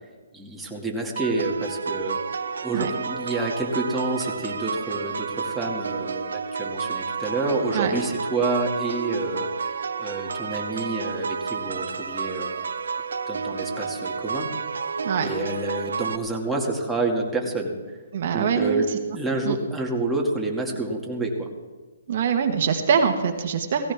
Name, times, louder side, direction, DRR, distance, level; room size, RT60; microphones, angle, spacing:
voice 1, 0.3-2.2 2.6-12.6 13.3-14.5 15.2-18.0 18.3-21.5, right 2 dB, 5° right, -3 dB, 2.3 m, -28 dB
sound 1, 1.2-16.2, right 5 dB, 80° right, 1.0 m, -30 dB
voice 2, 18.1-18.8 19.4-19.6 22.1-23.9, right 7 dB, 50° right, 6 dB, 1.4 m, -23 dB
17.5 x 16.5 x 3.6 m, 1.4 s
hypercardioid pair, 150°, 0 cm